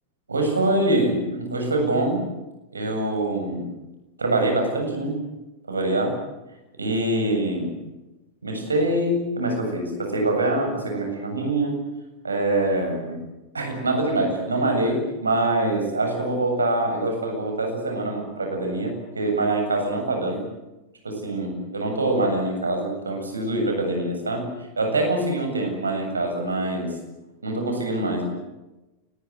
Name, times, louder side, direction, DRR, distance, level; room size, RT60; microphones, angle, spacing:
voice 1, 0.3-2.2 2.7-3.7 4.2-5.2 5.7-6.2 6.8-7.7 8.4-11.8 12.2-13.2 13.5-20.4 21.0-24.5 24.8-26.9 27.4-28.2, right 2 dB, 75° right, 4 dB, 7.7 m, -24 dB
28.5 x 20.5 x 8.0 m, 1.0 s
figure-of-eight pair, 90°, 0 cm